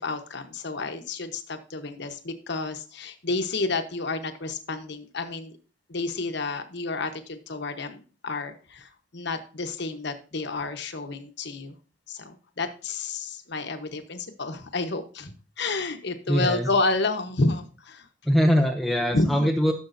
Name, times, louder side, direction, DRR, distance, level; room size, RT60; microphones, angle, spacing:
voice 1, 0.0-5.5 5.9-11.7 12.1-18.1 19.1-19.5, left 3 dB, 55° left, 7 dB, 1.1 m, -30 dB
voice 2, 16.3-16.7 18.2-19.7, equal, ahead, 3 dB, 0.6 m, -22 dB
14.5 x 7.0 x 2.7 m, 0.38 s
head